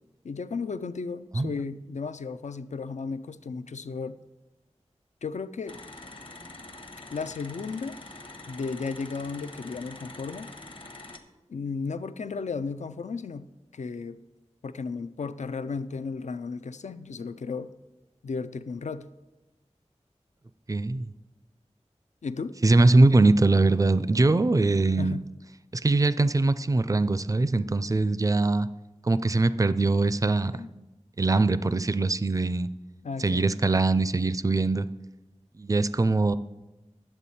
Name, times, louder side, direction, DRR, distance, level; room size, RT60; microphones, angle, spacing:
voice 1, 0.2-4.2 5.2-5.8 7.1-8.0 8.5-10.5 11.5-14.2 14.6-17.7 18.2-19.1 22.2-22.6 25.0-25.3 30.5-30.9 33.0-33.5, left 4 dB, 75° left, 12 dB, 0.4 m, -34 dB
sound 1, 5.7-11.2, left 2 dB, 45° left, 0.9 m, -45 dB
voice 2, 20.7-21.1 22.6-25.1 25.8-28.7 29.0-30.5 31.2-32.7 33.2-34.9 35.6-36.4, right 2 dB, 30° right, 14 dB, 0.4 m, -22 dB
10.0 x 7.1 x 4.2 m, 1.0 s
wide cardioid pair, 45°, 12 cm